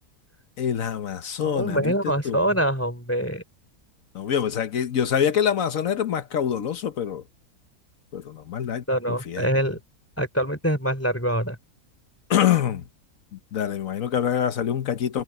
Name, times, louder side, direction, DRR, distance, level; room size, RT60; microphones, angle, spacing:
voice 1, 0.6-2.4 4.1-7.2 8.1-9.5 12.3-12.9 13.3-15.2, left 9 dB, 60° left, 1.3 m, -25 dB
voice 2, 1.4-3.4 8.9-9.8 10.2-11.6, right 1 dB, 10° left, 3.1 m, -24 dB
omnidirectional pair, 1.7 m